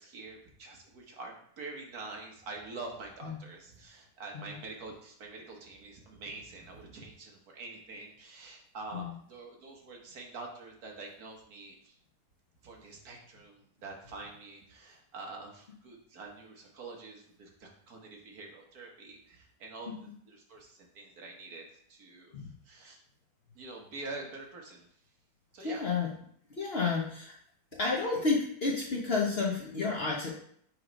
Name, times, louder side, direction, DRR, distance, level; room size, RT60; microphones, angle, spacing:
voice 1, 0.0-12.0 12.6-23.0 23.5-24.9 25.5-25.9, right 3 dB, 65° right, 0 dB, 1.5 m, -46 dB
voice 2, 25.6-26.1 26.6-27.3 27.8-30.3, left 4 dB, 45° left, -3 dB, 0.9 m, -31 dB
6.4 x 3.2 x 5.0 m, 0.64 s
omnidirectional pair, 1.8 m